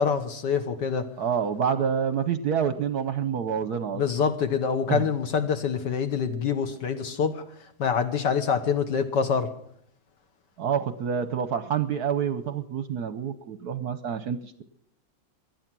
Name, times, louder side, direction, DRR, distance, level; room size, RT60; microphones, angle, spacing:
voice 1, 0.0-1.1 3.9-7.4 7.8-9.5, left 6 dB, 60° left, 1.7 m, -25 dB
voice 2, 1.2-4.0 4.9-5.0 10.6-14.6, right 7 dB, 65° right, 1.1 m, -27 dB
18.0 x 12.0 x 6.1 m
omnidirectional pair, 2.2 m